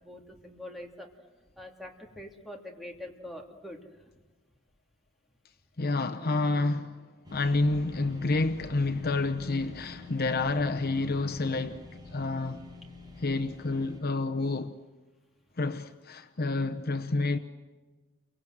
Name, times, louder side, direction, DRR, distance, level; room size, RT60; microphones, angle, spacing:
voice 1, 0.0-1.1 1.6-4.1, left 1 dB, ahead, 2.8 m, -44 dB
voice 2, 5.8-7.0 7.3-12.7 13.2-14.8 15.6-17.4, left 3 dB, 45° left, 0.9 m, -29 dB
sound 1, 7.2-14.0, left 2 dB, 20° right, 5.2 m, -47 dB
30.0 x 24.5 x 7.9 m
head